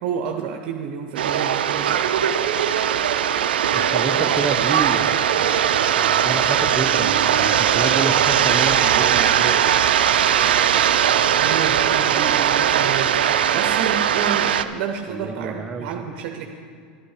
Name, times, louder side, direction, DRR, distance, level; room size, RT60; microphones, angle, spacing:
voice 1, 0.0-2.1 11.4-16.5, right 7 dB, 65° right, 4 dB, 0.8 m, -30 dB
sound 1, 1.2-14.6, right 9 dB, 85° right, 0.4 m, -19 dB
voice 2, 3.7-5.5 6.0-9.6 15.1-15.9, right 3 dB, 20° right, 6 dB, 0.8 m, -29 dB
11.5 x 10.5 x 4.9 m, 2.2 s
hypercardioid pair, 100°, 5 cm